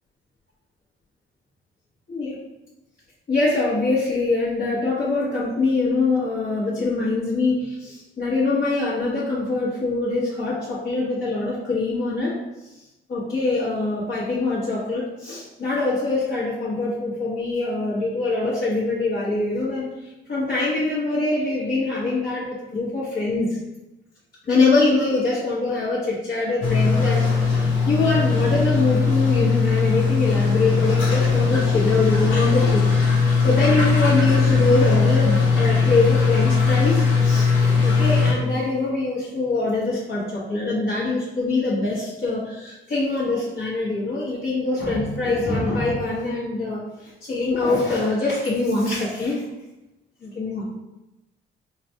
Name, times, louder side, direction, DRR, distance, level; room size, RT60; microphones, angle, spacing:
voice 1, 3.3-12.3 13.1-19.8 20.3-23.6 24.4-37.5 37.8-49.5 50.2-50.6, left 3 dB, 50° left, -10 dB, 1.1 m, -24 dB
sound 1, 26.6-38.3, left 5 dB, 80° left, 0.9 m, -19 dB
4.0 x 2.2 x 2.8 m, 0.97 s
cardioid pair, 90°, 20 cm